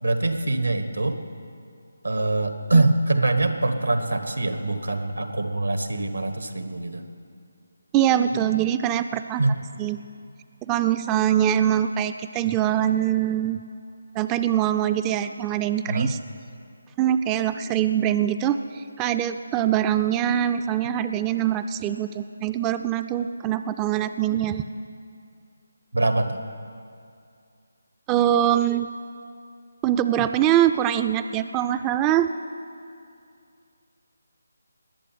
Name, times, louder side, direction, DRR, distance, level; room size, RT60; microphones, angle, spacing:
voice 1, 0.0-1.2 2.0-7.0 9.4-9.6 15.9-16.1 25.9-26.4, right 2 dB, 85° right, 8 dB, 1.6 m, -23 dB
voice 2, 7.9-9.4 9.8-10.0 10.7-13.6 14.1-16.2 17.0-24.6 28.1-28.9 29.8-32.3, right 11 dB, 15° right, 10 dB, 0.3 m, -23 dB
20.0 x 7.6 x 9.5 m, 2.4 s
figure-of-eight pair, 155°, 0 cm